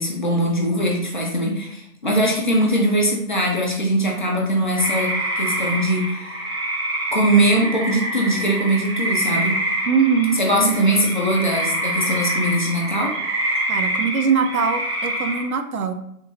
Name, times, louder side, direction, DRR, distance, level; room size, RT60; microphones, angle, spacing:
voice 1, 0.0-6.4 7.1-9.5 10.3-13.1, right 1 dB, 35° left, -2 dB, 0.5 m, -21 dB
sound 1, 4.7-15.4, right 1 dB, 20° right, 0.7 m, -26 dB
voice 2, 9.9-10.9 13.7-15.9, right 6 dB, 70° right, 7 dB, 0.5 m, -22 dB
3.5 x 2.4 x 3.1 m, 0.73 s
figure-of-eight pair, 140°, 45 cm